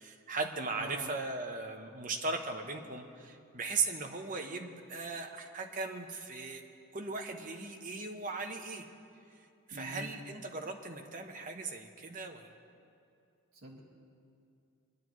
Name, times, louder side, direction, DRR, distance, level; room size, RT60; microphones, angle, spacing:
voice 1, 0.0-6.6 6.9-8.8 9.7-12.5, right 3 dB, 35° right, 4 dB, 0.9 m, -38 dB
voice 2, 0.8-1.1 9.7-10.1 13.5-13.8, right 2 dB, 65° right, -3 dB, 1.9 m, -44 dB
23.5 x 10.0 x 3.1 m, 2.5 s
head